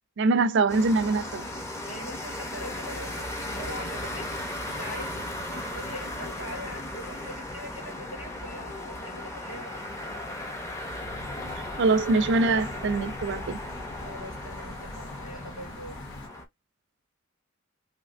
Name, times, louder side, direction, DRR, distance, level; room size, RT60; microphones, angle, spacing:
voice 1, 0.2-1.5 11.8-13.6, right 3 dB, 60° right, 0.5 m, -23 dB
sound 1, 0.7-16.4, left 1 dB, 15° left, 0.7 m, -36 dB
voice 2, 1.8-10.0 14.0-16.0, left 1 dB, 70° left, 2.2 m, -42 dB
sound 2, 11.0-16.3, left 1 dB, 90° left, 1.4 m, -43 dB
3.3 x 2.9 x 2.5 m
head